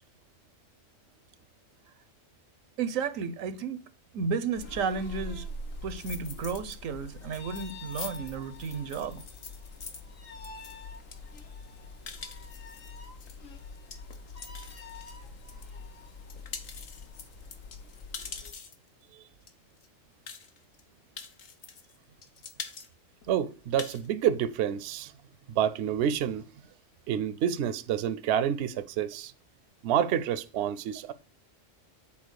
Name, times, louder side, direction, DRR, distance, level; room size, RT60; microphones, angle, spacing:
voice 1, 2.8-3.8 4.1-5.5 5.8-9.2, right 5 dB, 85° right, 1.2 m, -33 dB
sound 1, 4.5-18.5, left 3 dB, 85° left, 1.5 m, -44 dB
sound 2, 5.9-6.8 7.1-15.7 16.1-18.9 19.5-19.6 19.8-19.9 20.3-20.8 21.2-22.0 22.2-22.9 23.2-23.3 23.6-24.1, left 5 dB, 60° left, 1.2 m, -44 dB
voice 2, 23.3-25.1 25.5-26.4 27.1-29.3 29.8-31.1, right 9 dB, 65° right, 0.8 m, -28 dB
7.4 x 4.2 x 6.3 m
omnidirectional pair, 1.3 m